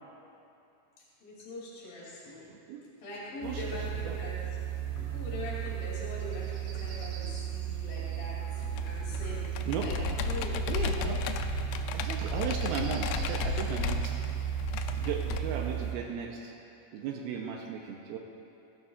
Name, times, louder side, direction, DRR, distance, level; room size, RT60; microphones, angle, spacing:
voice 1, 1.2-2.5 3.0-4.3 5.0-8.4 8.8-9.5 9.8-9.9 10.3-10.5, left 2 dB, 55° left, -6 dB, 4.1 m, -42 dB
voice 2, 2.5-2.8 3.4-4.2 8.5-8.7 9.2-10.4 10.7-11.2 11.9-14.4 14.9-16.5 16.9-18.2, right 6 dB, 90° right, 0 dB, 2.2 m, -37 dB
sound 1, 3.4-15.9, right 10 dB, 60° right, 2.4 m, -35 dB
Computer keyboard, 8.6-15.4, left 7 dB, 85° left, 2.8 m, -35 dB
16.5 x 12.5 x 2.4 m, 2.8 s
omnidirectional pair, 5.1 m